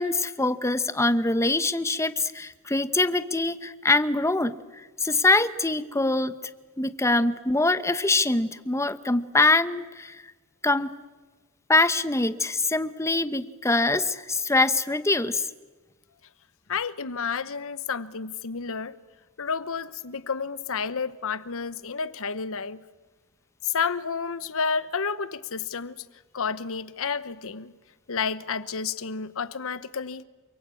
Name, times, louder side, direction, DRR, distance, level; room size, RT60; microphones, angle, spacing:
voice 1, 0.0-4.5 5.0-6.3 6.8-10.2 10.6-10.9 11.7-15.5, left 2 dB, 15° left, 0.9 m, -24 dB
voice 2, 16.7-18.9 19.4-22.8 23.6-26.0 26.3-27.7 28.1-30.2, left 5 dB, 65° left, 1.0 m, -30 dB
28.0 x 23.0 x 8.5 m
head